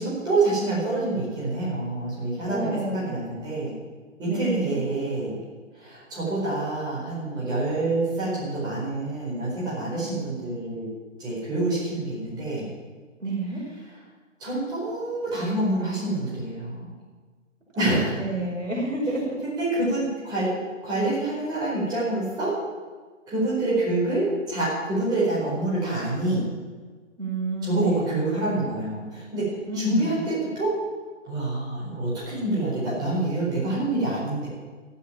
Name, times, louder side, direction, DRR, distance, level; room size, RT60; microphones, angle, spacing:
voice 1, 0.0-3.7 4.2-5.3 5.7-10.9 11.2-12.7 14.4-16.9 17.8-18.2 19.4-20.5 20.8-22.6 23.3-26.5 27.6-30.8 31.2-34.5, right 2 dB, 10° right, -8 dB, 4.7 m, -27 dB
voice 2, 2.4-3.1 4.3-4.8 10.0-10.2 13.2-13.6 17.7-19.4 27.2-28.2 29.7-30.2, right 2 dB, 70° right, -2 dB, 5.9 m, -30 dB
12.5 x 11.5 x 9.0 m, 1.4 s
figure-of-eight pair, 145°, 39 cm